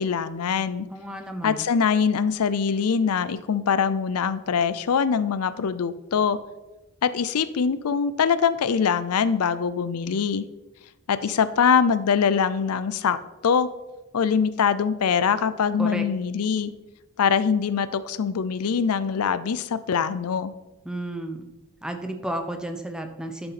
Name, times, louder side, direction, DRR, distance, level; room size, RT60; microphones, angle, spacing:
voice 1, 0.0-0.9 1.4-6.4 7.0-10.5 11.1-13.2 13.4-13.7 14.1-16.7 17.2-20.5, left 6 dB, 85° left, 15 dB, 0.5 m, -23 dB
voice 2, 0.9-1.6 15.8-16.0 20.8-21.5 21.8-23.5, right 1 dB, 5° right, 6 dB, 0.8 m, -32 dB
12.0 x 6.8 x 4.2 m, 1.1 s
head